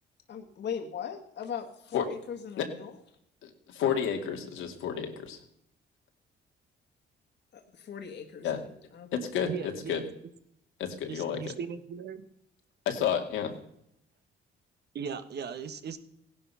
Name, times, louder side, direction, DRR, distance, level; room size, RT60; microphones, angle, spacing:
voice 1, 0.3-2.9 7.5-9.1, left 7 dB, 60° left, 4 dB, 1.8 m, -39 dB
voice 2, 3.4-5.4 8.4-8.6 9.1-9.5 9.9-10.0 10.8-11.5 12.9-13.5, left 8 dB, 90° left, 4 dB, 2.3 m, -30 dB
voice 3, 9.4-10.1 11.1-12.2 14.9-16.0, right 6 dB, 55° right, 10 dB, 1.5 m, -38 dB
16.5 x 11.0 x 5.7 m, 0.74 s
cardioid pair, 90°, 20 cm